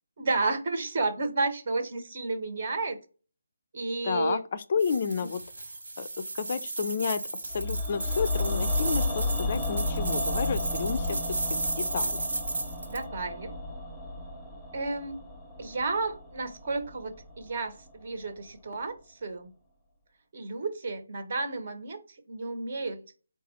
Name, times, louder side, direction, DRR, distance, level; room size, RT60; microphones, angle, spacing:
voice 1, 0.2-3.0 3.7-4.4 11.1-11.2 12.9-13.6 14.7-15.2 15.6-19.5 20.3-23.0, right 3 dB, 45° right, 6 dB, 0.9 m, -32 dB
voice 2, 4.0-5.4 6.0-12.2, left 6 dB, 40° left, 13 dB, 0.3 m, -31 dB
sound 1, 4.8-13.0, right 2 dB, 70° right, 1.2 m, -34 dB
sound 2, 7.5-17.6 17.9-18.0, left 2 dB, 5° left, 0.8 m, -33 dB
4.0 x 2.3 x 4.1 m, 0.35 s
figure-of-eight pair, 160°, 0 cm